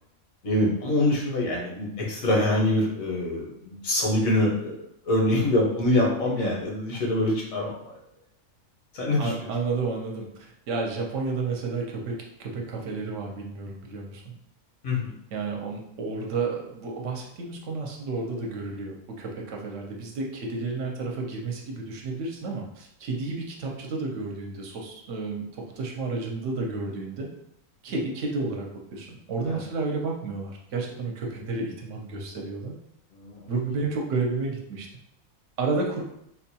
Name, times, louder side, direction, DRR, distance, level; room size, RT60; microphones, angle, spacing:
voice 1, 0.4-4.7 5.0-7.7 8.9-9.3 14.8-15.0 29.5-29.6 33.1-33.4, left 1 dB, 85° left, -3 dB, 1.4 m, -24 dB
voice 2, 9.2-10.3 10.7-12.1 12.4-14.3 15.3-27.3 27.8-28.7 28.9-32.7 33.5-34.9 35.6-36.0, right 3 dB, 65° right, 0 dB, 1.0 m, -31 dB
4.0 x 2.2 x 2.8 m, 0.75 s
omnidirectional pair, 1.4 m